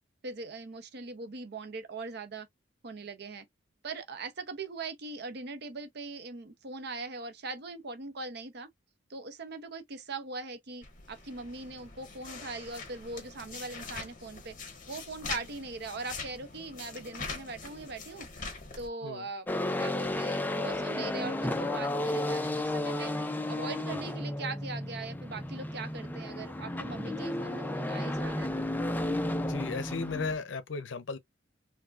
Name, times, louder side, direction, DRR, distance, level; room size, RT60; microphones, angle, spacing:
voice 1, 0.2-2.5 2.8-3.5 3.8-8.7 9.1-14.5 14.9-18.3 18.8-19.5 19.8-23.1 23.5-28.6, right 3 dB, 60° right, 0.7 m, -41 dB
sound 1, 10.8-18.9, left 4 dB, 45° left, 1.4 m, -43 dB
sound 2, 19.5-30.4, left 1 dB, 10° left, 0.4 m, -33 dB
voice 2, 29.4-31.2, left 4 dB, 80° left, 0.6 m, -35 dB
4.6 x 2.2 x 2.4 m
head